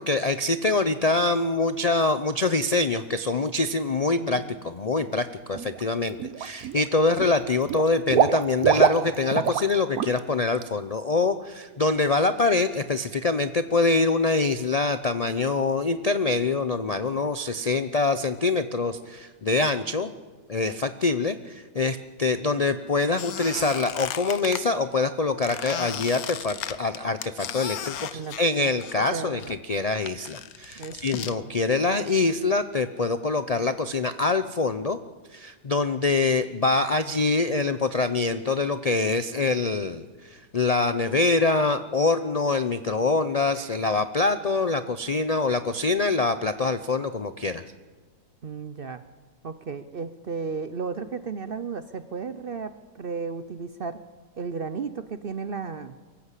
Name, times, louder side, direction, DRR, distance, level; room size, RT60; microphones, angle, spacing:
voice 1, 0.0-20.1 20.5-35.0 35.3-47.6, left 3 dB, 50° left, 11 dB, 0.4 m, -25 dB
voice 2, 4.1-4.5 28.1-28.4 28.6-29.5 30.8-31.5 48.4-49.0 49.4-54.0 54.4-56.1, right 5 dB, 50° right, 12 dB, 0.7 m, -34 dB
Water / Liquid, 5.5-5.8 6.2-6.9 7.2-9.7 10.0-10.2 10.6-10.7, right 9 dB, 70° right, 1.2 m, -24 dB
Squeak, 23.2-24.6 25.4-29.1 29.4-31.4, left 10 dB, 75° left, 1.2 m, -35 dB
23.5 x 14.5 x 8.3 m, 1.4 s
omnidirectional pair, 1.6 m